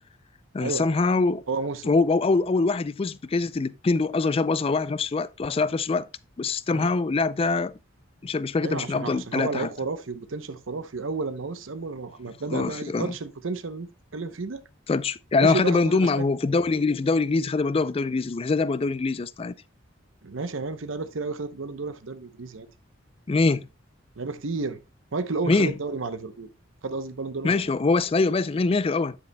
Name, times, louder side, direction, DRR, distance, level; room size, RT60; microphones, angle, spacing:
voice 1, 0.5-1.4 1.9-6.1 6.4-7.7 8.2-9.7 12.5-13.1 14.9-19.5 23.3-23.7 25.5-25.7 27.4-29.2, left 3 dB, 30° left, 0.3 m, -24 dB
voice 2, 1.5-1.9 6.7-6.9 8.6-14.6 15.4-16.3 20.2-22.7 24.2-24.8 25.1-26.5 26.8-27.6, right 3 dB, 75° right, 0.8 m, -32 dB
9.4 x 8.2 x 2.2 m
head